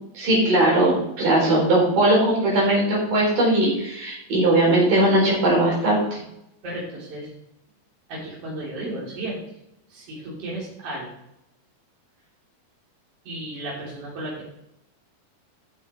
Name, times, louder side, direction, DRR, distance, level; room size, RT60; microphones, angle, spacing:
voice 1, 0.1-6.2, right 1 dB, 65° right, -4 dB, 6.0 m, -19 dB
voice 2, 6.6-7.3 8.1-9.4 9.9-11.1 13.2-14.5, right 1 dB, 40° right, -6 dB, 4.2 m, -33 dB
13.0 x 7.7 x 4.5 m, 0.82 s
omnidirectional pair, 4.2 m